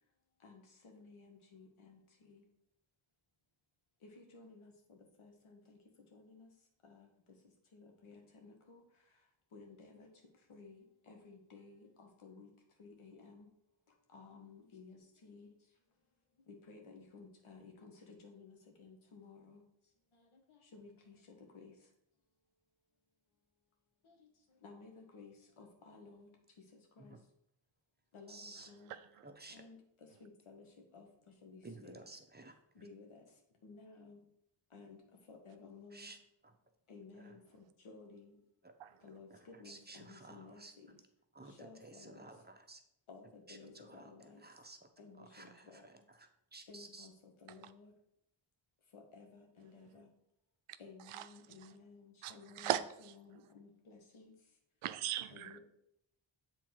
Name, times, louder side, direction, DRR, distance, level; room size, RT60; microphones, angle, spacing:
voice 1, 0.4-2.0 2.3-2.4 4.2-4.7 5.2-5.8 6.1-6.5 6.9-7.1 7.7-8.1 8.4-8.8 9.5-10.1 10.5-11.8 12.2-12.5 12.8-13.5 14.1-15.5 16.7-17.9 18.2-19.6 20.7-21.2 21.6-21.7 24.6-26.3 27.0-27.1 28.1-28.9 29.5-29.8 30.2-30.6 30.9-31.1 31.4-32.0 32.8-33.1 33.6-34.2 34.7-35.0 35.3-36.1 36.9-37.4 37.8-38.3 39.0-39.3 39.6-40.9 41.6-42.2 43.1-44.4 45.0-45.3 46.7-47.1 47.4-47.9 49.1-50.1 50.8-52.7 53.0-54.3 55.3-55.6, left 4 dB, 75° left, 1.5 m, -55 dB
voice 2, 28.3-28.7 29.2-29.6 31.6-32.6 35.9-36.2 37.2-37.4 38.6-38.7 39.3-40.7 41.3-42.8 43.5-44.9 45.2-47.1, right 2 dB, 20° right, 1.0 m, -54 dB
voice 3, 28.8-29.2 38.8-39.0 47.6-47.7 51.1-51.3 51.6-51.7 52.2-53.1 54.8-55.6, right 12 dB, 90° right, 0.6 m, -39 dB
7.4 x 3.8 x 4.8 m
cardioid pair, 60°, 49 cm